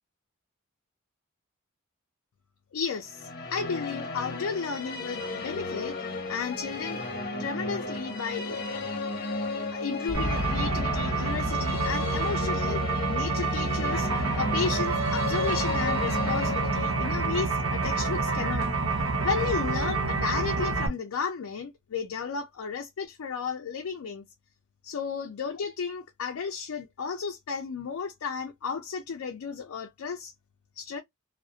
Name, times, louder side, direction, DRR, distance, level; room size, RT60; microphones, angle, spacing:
voice 1, 2.7-7.0 7.4-8.7 9.7-18.7 19.2-24.2 24.8-30.3 30.8-31.0, left 5 dB, 80° left, 0.4 m, -33 dB
sound 1, 3.0-19.1, left 3 dB, 45° left, 0.7 m, -35 dB
sound 2, 10.1-17.8, left 1 dB, 50° right, 1.2 m, -43 dB
sound 3, 10.1-20.9, right 3 dB, 75° right, 0.6 m, -28 dB
2.4 x 2.0 x 2.6 m
head